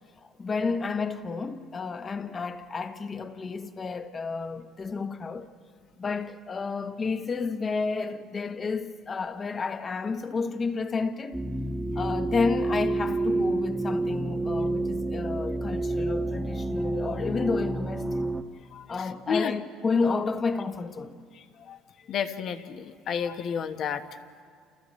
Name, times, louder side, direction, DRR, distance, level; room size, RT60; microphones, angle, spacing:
voice 1, 0.4-5.5 6.0-11.4 11.9-18.3 18.9-21.2, left 4 dB, 35° left, 1.2 m, -31 dB
sound 1, 11.3-18.4, right 2 dB, 10° right, 1.2 m, -29 dB
voice 2, 22.1-24.0, left 7 dB, 55° left, 1.2 m, -30 dB
29.5 x 29.0 x 3.2 m
supercardioid pair, 80°, 0 cm